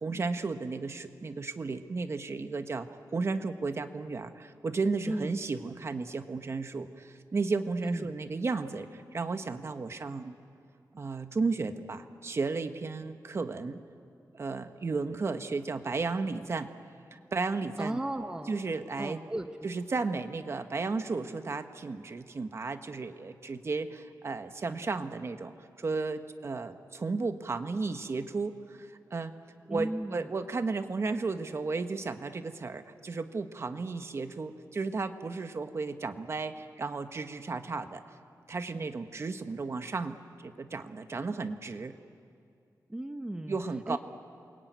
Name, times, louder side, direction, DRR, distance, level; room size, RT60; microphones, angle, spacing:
voice 1, 0.0-10.4 10.9-13.8 14.3-16.7 17.1-18.0 18.5-19.2 19.6-25.5 25.8-29.3 29.7-38.0 38.5-40.2 40.4-41.9 43.5-44.0, right 4 dB, 40° right, 8 dB, 1.2 m, -34 dB
voice 2, 17.8-18.6 19.0-19.5 29.7-30.3 42.9-43.6 43.9-44.0, right 1 dB, 10° right, 6 dB, 0.9 m, -35 dB
28.5 x 22.0 x 9.4 m, 2.4 s
wide cardioid pair, 175°, 7 cm